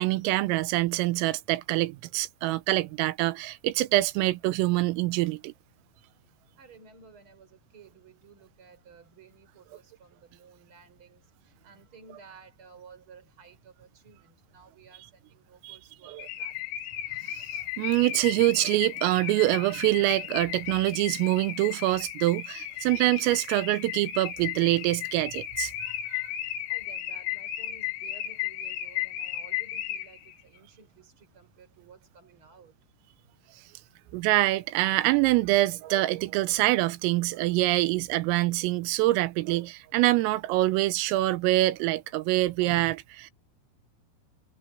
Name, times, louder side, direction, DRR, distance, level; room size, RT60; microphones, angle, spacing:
voice 1, 0.0-5.5 15.6-15.8 16.1-16.2 17.3-17.4 17.8-26.3 34.1-43.3, right 17 dB, 85° right, 3.4 m, -25 dB
voice 2, 6.6-16.7 26.7-32.8, right 5 dB, 25° right, 5.5 m, -54 dB
Car / Alarm, 16.2-30.3, left 12 dB, 75° left, 4.2 m, -35 dB
omnidirectional pair, 6.0 m